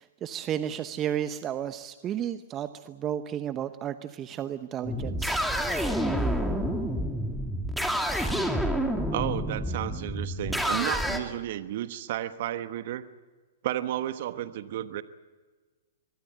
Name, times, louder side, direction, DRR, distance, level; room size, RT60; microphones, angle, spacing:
voice 1, 0.0-5.4, right 10 dB, 25° right, 11 dB, 0.9 m, -33 dB
sound 1, 4.8-11.2, equal, ahead, 2.6 m, -28 dB
voice 2, 9.1-13.0 13.6-15.0, right 12 dB, 55° right, 12 dB, 1.1 m, -32 dB
24.0 x 21.5 x 7.9 m, 1.4 s
hypercardioid pair, 115°, 0 cm